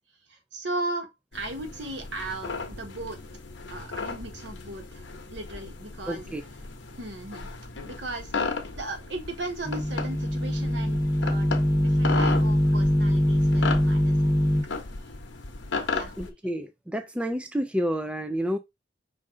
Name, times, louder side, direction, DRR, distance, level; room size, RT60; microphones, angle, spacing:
voice 1, 0.3-3.2 3.7-6.3 7.0-7.5 7.8-14.6 15.7-16.1, right 2 dB, 70° right, 1.3 m, -37 dB
sound 1, 1.3-16.3, left 4 dB, 75° left, 0.9 m, -35 dB
voice 2, 6.1-6.4 16.2-18.6, equal, 5° right, 0.3 m, -29 dB
sound 2, 9.6-14.6, equal, 15° left, 1.1 m, -23 dB
5.4 x 2.6 x 3.7 m
head